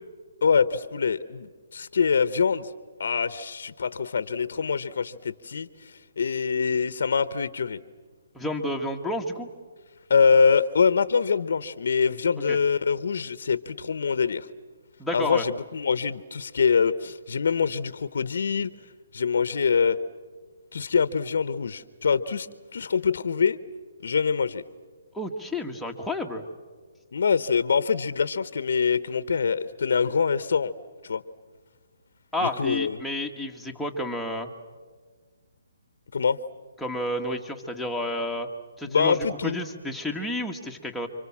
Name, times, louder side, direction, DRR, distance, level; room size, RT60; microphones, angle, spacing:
voice 1, 0.4-2.7 3.0-5.7 6.2-7.8 10.1-14.5 15.1-18.7 19.1-20.0 20.7-22.5 22.7-23.6 24.0-24.6 27.1-30.7 31.0-31.2 32.4-33.0 36.1-36.4 38.8-39.6, left 5 dB, 70° left, 14 dB, 1.1 m, -24 dB
voice 2, 8.3-9.5 12.5-12.6 15.0-15.5 25.1-26.4 32.3-34.5 36.8-38.5 38.8-41.1, left 1 dB, ahead, 0 dB, 1.8 m, -30 dB
29.5 x 25.0 x 7.4 m, 1.5 s
hypercardioid pair, 150°, 0 cm